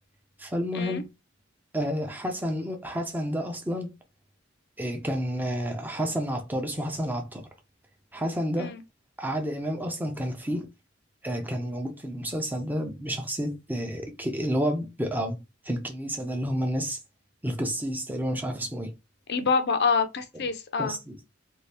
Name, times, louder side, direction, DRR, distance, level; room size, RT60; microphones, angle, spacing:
voice 1, 0.4-1.1 1.7-4.0 4.8-7.4 8.1-8.8 9.2-10.7 11.2-17.0 17.4-18.9 20.3-20.5 20.8-21.2, equal, 10° right, 0.6 m, -30 dB
voice 2, 19.3-21.0, left 5 dB, 60° left, 0.6 m, -26 dB
2.7 x 2.5 x 3.3 m
head